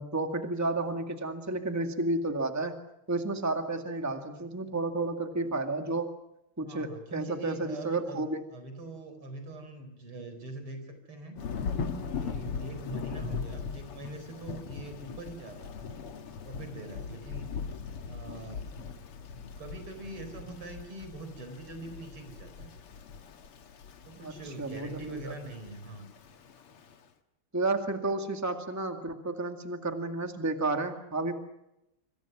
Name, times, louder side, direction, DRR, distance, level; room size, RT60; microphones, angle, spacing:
voice 1, 0.0-2.8 3.1-6.1 6.6-8.4 24.2-24.3 24.6-25.3 27.5-31.3, right 2 dB, 10° right, 5 dB, 1.9 m, -31 dB
voice 2, 6.6-11.4 12.0-16.1 16.4-17.5 18.1-18.7 19.6-22.7 24.0-26.1, right 2 dB, 80° right, 8 dB, 5.2 m, -43 dB
Thunder / Rain, 11.4-27.0, left 5 dB, 90° left, 2.5 m, -40 dB
26.5 x 26.0 x 6.1 m, 0.88 s
omnidirectional pair, 2.4 m